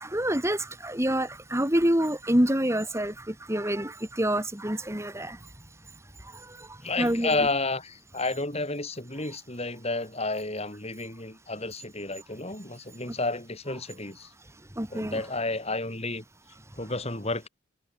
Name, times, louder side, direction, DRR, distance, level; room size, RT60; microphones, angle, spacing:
voice 1, 0.0-5.4 7.0-7.5 14.8-15.2, right 1 dB, 15° right, 2.7 m, -27 dB
voice 2, 6.8-14.3 14.9-16.2 16.8-17.5, left 2 dB, 30° left, 4.7 m, -31 dB
head